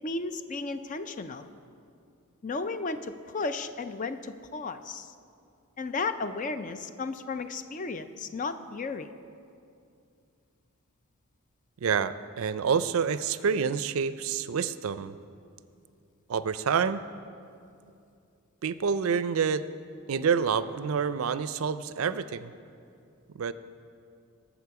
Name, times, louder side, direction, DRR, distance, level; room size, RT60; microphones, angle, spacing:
voice 1, 0.0-1.5 2.4-5.1 5.8-9.1, left 3 dB, 35° left, 10 dB, 0.5 m, -34 dB
voice 2, 11.8-15.2 16.3-17.1 18.6-19.6 20.1-22.5 23.3-23.5, right 6 dB, 75° right, 14 dB, 0.4 m, -28 dB
19.0 x 7.2 x 4.8 m, 2.5 s
head